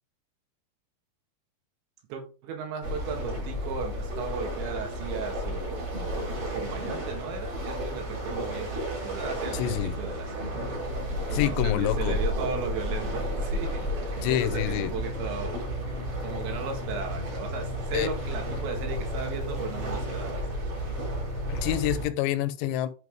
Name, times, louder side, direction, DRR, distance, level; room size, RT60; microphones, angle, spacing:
voice 1, 2.1-5.9 6.3-8.7 9.0-10.6 11.3-15.6 16.2-20.5, right 6 dB, 85° right, 3 dB, 4.0 m, -36 dB
sound 1, 2.8-22.1, equal, 35° right, 4.2 m, -32 dB
voice 2, 9.5-9.9 11.3-12.2 14.2-14.9 17.9-18.1 21.5-22.9, left 13 dB, 85° left, 12 dB, 3.0 m, -27 dB
9.6 x 5.6 x 3.6 m, 0.38 s
omnidirectional pair, 5.1 m